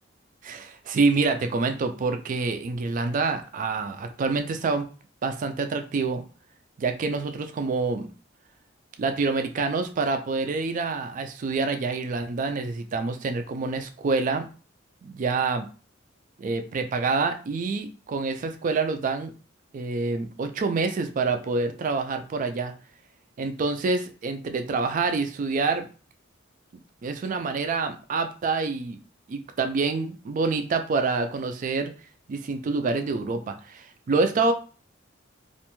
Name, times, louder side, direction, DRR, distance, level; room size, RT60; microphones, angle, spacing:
voice 1, 0.4-4.9 5.2-6.2 6.8-8.1 9.0-14.5 15.0-15.7 16.4-19.3 19.7-22.7 23.4-25.9 27.0-29.0 29.3-31.9 32.3-34.5, right 4 dB, 40° right, 7 dB, 0.3 m, -27 dB
2.5 x 2.2 x 2.9 m, 0.37 s
head